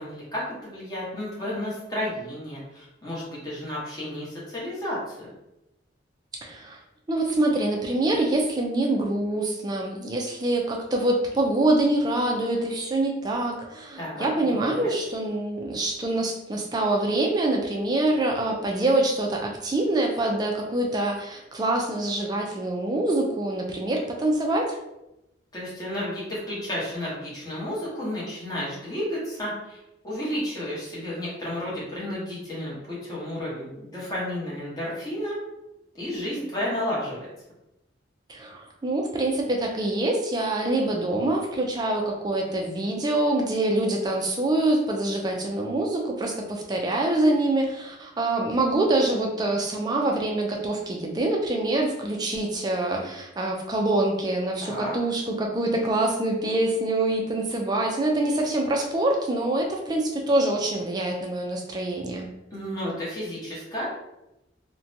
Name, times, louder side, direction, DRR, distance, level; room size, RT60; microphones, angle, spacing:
voice 1, 0.0-5.3 14.0-14.9 25.5-29.8 30.0-35.4 35.9-37.3 54.6-54.9 62.5-63.8, left 1 dB, 20° left, -8 dB, 0.9 m, -32 dB
voice 2, 6.4-6.8 7.1-24.8 38.3-62.3, right 2 dB, 20° right, 1 dB, 0.3 m, -25 dB
2.6 x 2.1 x 2.6 m, 0.90 s
head